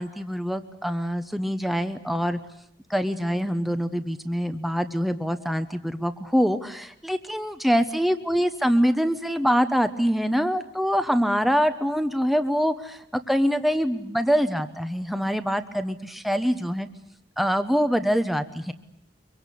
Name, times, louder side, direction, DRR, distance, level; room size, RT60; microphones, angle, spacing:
voice 1, 0.0-2.4 2.9-16.9 17.4-18.7, equal, ahead, 9 dB, 1.0 m, -24 dB
24.5 x 23.5 x 8.5 m, 0.75 s
head